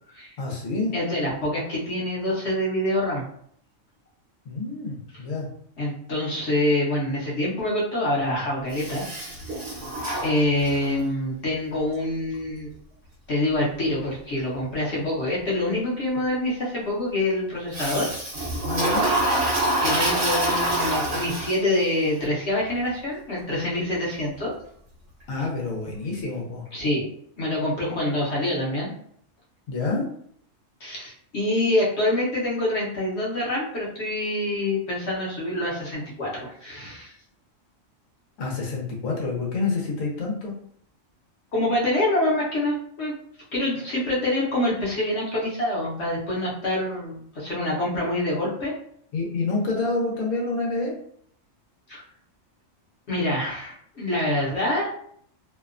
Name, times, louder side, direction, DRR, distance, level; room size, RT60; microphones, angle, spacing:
voice 1, 0.4-0.9 4.4-5.5 17.9-18.0 18.6-19.1 25.3-26.7 29.7-30.0 38.4-40.5 49.1-50.9, left 3 dB, 85° left, -1 dB, 1.2 m, -28 dB
voice 2, 0.9-3.2 5.8-9.0 10.2-12.7 13.3-18.1 19.8-24.5 26.7-27.1 27.4-28.9 30.8-37.1 41.5-43.1 43.5-48.7 51.9-52.0 53.1-54.9, left 1 dB, 60° left, -5 dB, 1.0 m, -26 dB
Toilet flush, 8.7-11.0 17.7-21.9, right 1 dB, 50° right, 0.9 m, -26 dB
2.8 x 2.1 x 2.4 m, 0.64 s
omnidirectional pair, 1.3 m